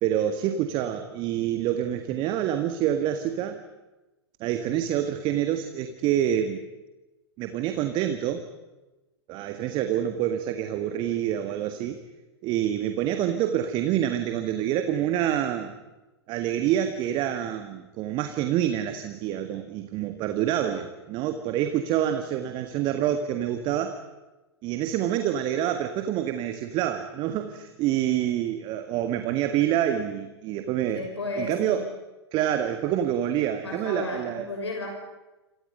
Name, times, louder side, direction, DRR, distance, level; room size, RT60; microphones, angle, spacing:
voice 1, 0.0-3.6 4.4-6.6 7.4-8.5 9.3-12.0 12.4-15.8 16.3-24.0 24.6-31.1 31.4-31.9 32.3-34.4, right 11 dB, 35° right, 8 dB, 1.7 m, -27 dB
voice 2, 30.9-31.8 33.6-34.9, left 2 dB, 75° left, 1 dB, 6.2 m, -33 dB
28.0 x 27.5 x 5.5 m, 1.1 s
figure-of-eight pair, 100°, 14 cm